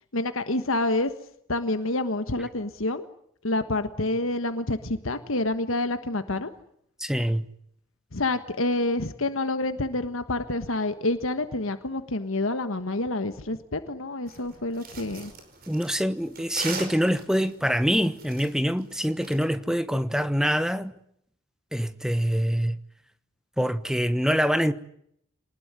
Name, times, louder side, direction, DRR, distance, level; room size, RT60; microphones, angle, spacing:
voice 1, 0.1-1.1 1.5-3.1 3.4-6.5 8.1-15.3, left 2 dB, 75° left, 1.5 m, -28 dB
voice 2, 7.0-7.5 15.7-20.9 21.7-22.7 23.6-24.7, equal, 5° right, 1.1 m, -25 dB
sound 1, 14.3-19.4, right 4 dB, 45° right, 5.2 m, -40 dB
27.5 x 20.0 x 9.6 m
head